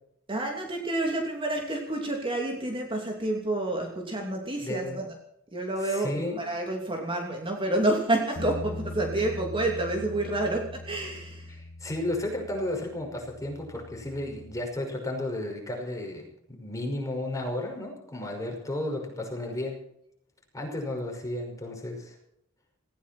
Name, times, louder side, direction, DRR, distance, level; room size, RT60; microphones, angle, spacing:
voice 1, 0.3-5.2 5.5-11.6, right 2 dB, 25° right, 1 dB, 2.9 m, -29 dB
voice 2, 4.6-5.0 5.8-6.4 11.5-16.3 16.6-19.8 20.5-22.2, left 1 dB, 15° left, 1 dB, 5.6 m, -33 dB
sound 1, 8.4-14.6, left 2 dB, 70° left, 1.8 m, -41 dB
19.0 x 16.5 x 4.4 m, 0.75 s
head